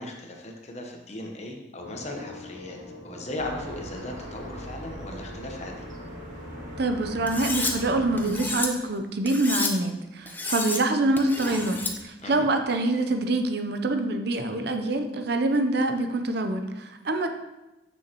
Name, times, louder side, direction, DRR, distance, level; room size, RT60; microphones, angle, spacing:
voice 1, 0.0-2.8 3.0-5.8 12.2-12.5, left 1 dB, 35° left, 2 dB, 1.0 m, -37 dB
sound 1, 1.8-7.8, left 1 dB, 70° left, 2.0 m, -43 dB
sound 2, 3.4-8.5, right 1 dB, 40° right, 1.8 m, -41 dB
voice 2, 6.8-17.3, right 2 dB, 60° right, 6 dB, 0.6 m, -25 dB
Cutlery silverware, 7.3-7.7 8.2-8.7 9.3-9.7 10.3-10.8 11.2-11.9, left 2 dB, 10° left, 0.6 m, -30 dB
9.1 x 6.4 x 3.0 m, 1.0 s
head